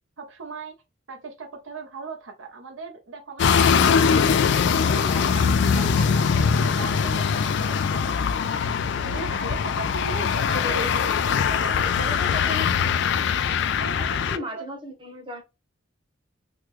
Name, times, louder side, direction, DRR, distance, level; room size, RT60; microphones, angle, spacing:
voice 1, 0.2-0.8 1.1-4.1 4.4-8.5 9.0-12.1 13.7-14.6, right 4 dB, 80° right, 0.7 m, -38 dB
sound 1, 3.4-14.4, left 6 dB, 60° left, 0.3 m, -22 dB
voice 2, 10.4-11.2 11.8-12.8 13.8-15.4, left 1 dB, 25° right, 0.9 m, -36 dB
3.5 x 2.2 x 3.0 m
head